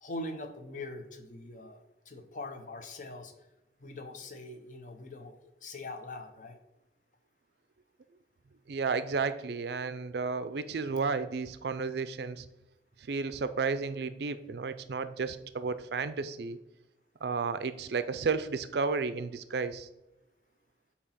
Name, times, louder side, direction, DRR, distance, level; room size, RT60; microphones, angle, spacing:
voice 1, 0.0-3.3 3.8-5.3 5.6-6.6, left 2 dB, 45° left, 6 dB, 0.8 m, -42 dB
voice 2, 8.7-12.5 13.0-16.6 17.2-19.9, right 4 dB, 65° right, 13 dB, 0.4 m, -32 dB
8.3 x 2.9 x 5.7 m, 0.95 s
head